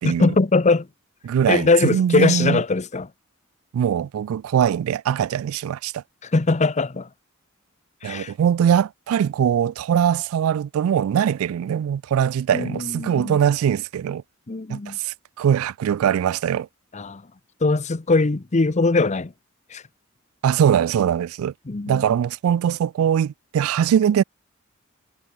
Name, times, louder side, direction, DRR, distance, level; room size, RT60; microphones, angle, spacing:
voice 1, 0.0-0.9 1.5-3.1 6.2-7.1 8.0-8.3 12.5-13.4 14.5-15.0 16.9-17.2 17.6-19.3 19.7-19.8 21.7-22.0, left 3 dB, 35° left, 0.7 m, -21 dB
voice 2, 1.2-2.6 3.7-6.0 8.0-14.2 14.7-16.7 20.4-21.5 21.9-24.2, right 9 dB, 70° right, 0.3 m, -21 dB
head